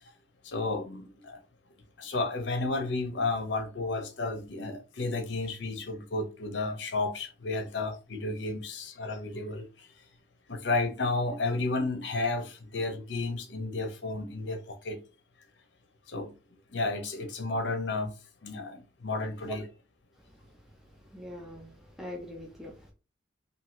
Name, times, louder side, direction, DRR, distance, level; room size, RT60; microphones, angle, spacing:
voice 1, 0.4-1.4 2.0-9.9 10.5-15.0 16.1-16.3 16.7-18.1 18.4-19.7, left 3 dB, 65° left, 0.7 m, -32 dB
voice 2, 21.1-22.9, equal, ahead, 0.5 m, -42 dB
2.7 x 2.7 x 2.9 m
head